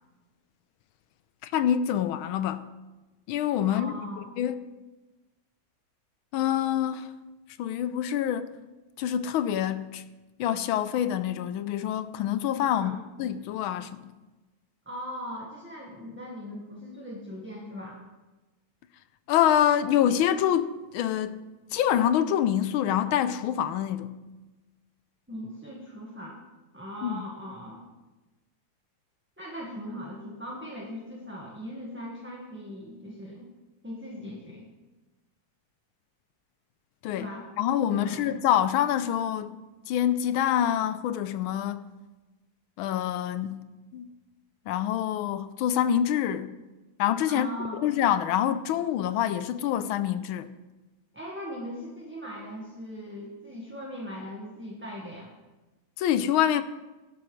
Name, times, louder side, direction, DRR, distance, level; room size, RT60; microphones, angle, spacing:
voice 1, 1.4-2.7 3.3-4.0 4.4-4.6 6.3-7.1 7.6-8.5 9.0-10.0 10.4-14.0 19.3-21.4 21.7-24.2 27.0-27.2 37.0-37.3 37.6-39.6 39.9-41.8 42.8-43.7 43.9-44.1 44.7-46.6 47.0-47.5 47.8-50.5 56.0-56.6, left 10 dB, 90° left, 1.4 m, -26 dB
voice 2, 3.7-4.3 12.7-13.0 14.8-18.0 25.3-26.4 26.7-27.8 29.4-33.5 33.8-34.7 37.1-37.5 37.9-38.3 47.3-47.8 51.1-55.3, equal, 5° right, 1.1 m, -39 dB
16.0 x 12.0 x 3.1 m
omnidirectional pair, 2.2 m